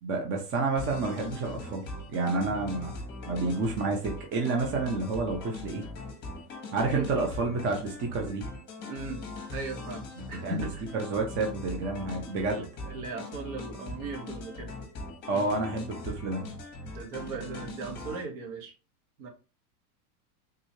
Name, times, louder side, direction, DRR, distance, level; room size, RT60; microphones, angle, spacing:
voice 1, 0.0-2.9 3.3-5.8 6.7-8.4 10.4-10.7 10.9-12.7 15.3-16.4, right 3 dB, 25° right, 2 dB, 0.7 m, -29 dB
sound 1, 0.8-18.2, left 2 dB, 25° left, 1.3 m, -41 dB
voice 2, 6.8-7.1 8.8-9.2 9.5-10.9 12.4-14.8 15.3-15.5 16.8-18.7 19.2-19.3, right 3 dB, 60° right, 2 dB, 1.3 m, -38 dB
3.7 x 3.0 x 2.8 m, 0.33 s
supercardioid pair, 140°, 46 cm